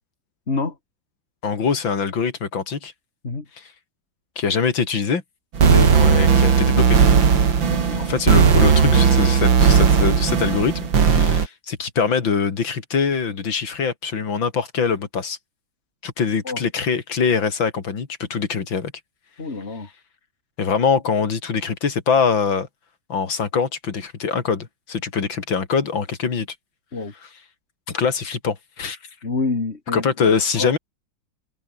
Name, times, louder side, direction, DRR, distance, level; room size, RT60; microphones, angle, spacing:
voice 1, 1.4-2.9 3.6-3.7 4.4-5.2 5.6-7.0 7.9-10.7 11.0-15.4 16.0-18.9 20.6-22.7 23.1-26.5 27.2-27.3 27.9-29.0 29.9-30.8, left 5 dB, 85° left, 3.4 m, -23 dB
sound 1, 5.6-11.5, right 6 dB, 85° right, 3.0 m, -16 dB
voice 2, 19.4-19.9 26.9-27.1 29.2-30.1 30.6-30.7, left 3 dB, 35° left, 2.9 m, -27 dB
omnidirectional pair, 2.1 m